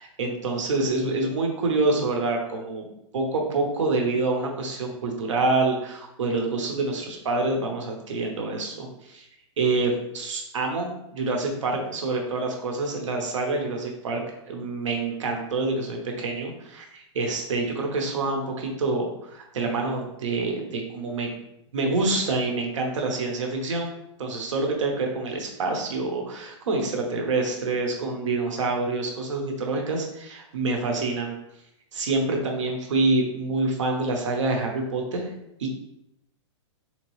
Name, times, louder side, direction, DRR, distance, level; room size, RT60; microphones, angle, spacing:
voice 1, 0.0-2.8 3.1-9.3 9.6-14.2 14.5-21.3 21.7-23.9 24.2-31.4 31.9-35.3 35.6-35.7, right 3 dB, 85° right, 2 dB, 0.9 m, -27 dB
3.8 x 2.9 x 3.1 m, 0.83 s
hypercardioid pair, 155°, 15 cm